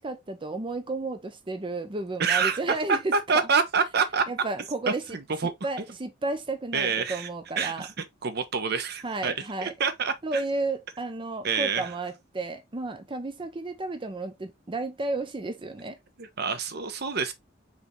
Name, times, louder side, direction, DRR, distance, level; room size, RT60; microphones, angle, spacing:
voice 1, 0.0-3.4 4.3-5.2 5.6-7.9 9.0-9.7 10.2-16.0, right 3 dB, 25° right, 0.6 m, -32 dB
voice 2, 2.2-2.6 2.9-4.3 4.9-5.5 6.7-7.3 7.6-7.9 8.2-10.4 11.4-11.9 16.2-17.3, right 5 dB, 60° right, 0.8 m, -27 dB
4.9 x 3.4 x 3.1 m
head